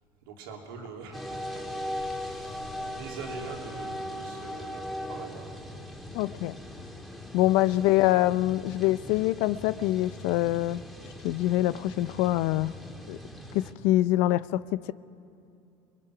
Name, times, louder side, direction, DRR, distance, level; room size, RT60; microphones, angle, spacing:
voice 1, 0.2-5.6 7.8-7.9, right 5 dB, 90° right, 0 dB, 3.3 m, -44 dB
sound 1, 1.1-13.7, left 1 dB, ahead, 2.3 m, -39 dB
voice 2, 6.1-6.6 7.3-10.8 11.2-12.7 13.1-13.2 13.5-14.9, left 16 dB, 70° left, 16 dB, 0.5 m, -25 dB
28.0 x 21.0 x 6.0 m, 2.6 s
supercardioid pair, 95°, 11 cm